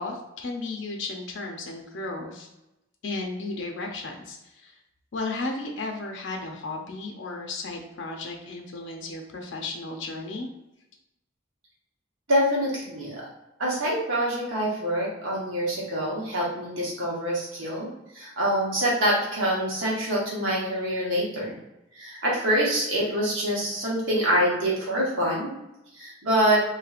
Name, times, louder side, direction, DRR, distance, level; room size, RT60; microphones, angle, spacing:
voice 1, 0.0-2.5 3.0-4.8 5.1-10.5, left 3 dB, 65° left, 2 dB, 0.5 m, -34 dB
voice 2, 12.3-13.2 13.6-17.9 18.1-21.5 21.9-25.5 26.0-26.6, equal, 80° right, -5 dB, 1.3 m, -25 dB
3.2 x 3.2 x 2.4 m, 0.90 s
head